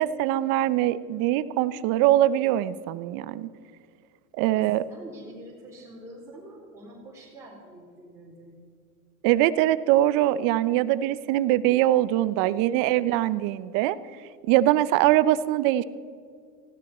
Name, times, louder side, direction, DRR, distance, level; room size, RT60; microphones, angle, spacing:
voice 1, 0.0-3.5 4.4-4.8 9.2-14.0 14.5-15.8, right 14 dB, 45° right, 16 dB, 0.8 m, -22 dB
voice 2, 4.5-8.6 12.4-13.0, right 1 dB, 5° right, -7 dB, 3.9 m, -46 dB
20.0 x 16.0 x 4.3 m, 2.2 s
hypercardioid pair, 115°, 46 cm